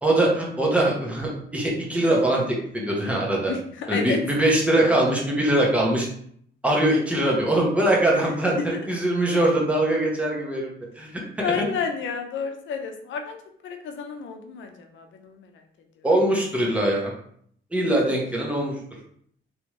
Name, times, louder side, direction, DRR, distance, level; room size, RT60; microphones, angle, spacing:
voice 1, 0.0-3.5 3.9-6.1 6.6-11.7 16.0-17.1 17.7-18.7, right 1 dB, 5° right, -3 dB, 1.2 m, -22 dB
voice 2, 3.5-4.2 8.2-8.3 8.7-8.8 11.4-13.4 13.6-15.5 16.0-16.1 17.8-18.0, left 6 dB, 75° left, 5 dB, 0.7 m, -31 dB
3.4 x 3.0 x 3.1 m, 0.64 s
cardioid pair, 90°, 20 cm